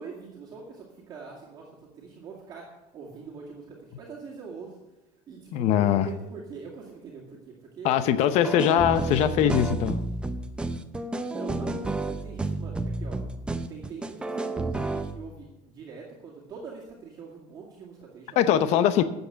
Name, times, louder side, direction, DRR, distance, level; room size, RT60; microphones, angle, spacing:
voice 1, 0.0-4.8 5.3-8.2 8.5-8.8 9.0-9.1 11.0-13.2 13.7-18.9, right 5 dB, 30° right, -4 dB, 2.2 m, -43 dB
voice 2, 5.5-6.1 7.8-10.0 18.4-19.0, left 10 dB, 50° left, 12 dB, 0.8 m, -22 dB
sound 1, 8.4-15.2, right 2 dB, 5° right, 0.5 m, -31 dB
13.0 x 8.1 x 5.9 m, 1.0 s
cardioid pair, 175°, 14 cm